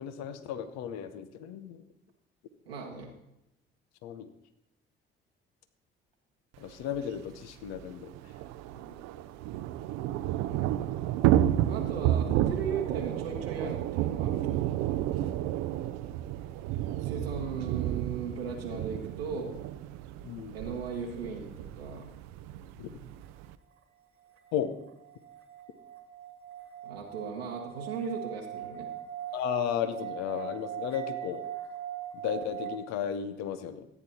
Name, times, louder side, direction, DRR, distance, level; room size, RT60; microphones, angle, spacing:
voice 1, 0.0-1.8 4.0-4.3 6.6-8.1 20.2-20.6 22.8-23.0 24.5-24.8 29.3-31.5 32.1-33.9, left 9 dB, 65° left, 11 dB, 0.9 m, -34 dB
voice 2, 2.7-3.1 8.7-9.1 11.6-14.8 17.0-19.6 20.5-22.1 26.8-28.9, right 5 dB, 85° right, -1 dB, 1.2 m, -37 dB
Thunder / Rain, 6.9-7.0 7.3-7.4 7.7-23.5, right 12 dB, 65° right, 0.6 m, -31 dB
sound 1, 24.4-32.8, right 10 dB, 50° right, 1.4 m, -40 dB
13.5 x 9.4 x 4.2 m, 0.86 s
figure-of-eight pair, 45°, 29 cm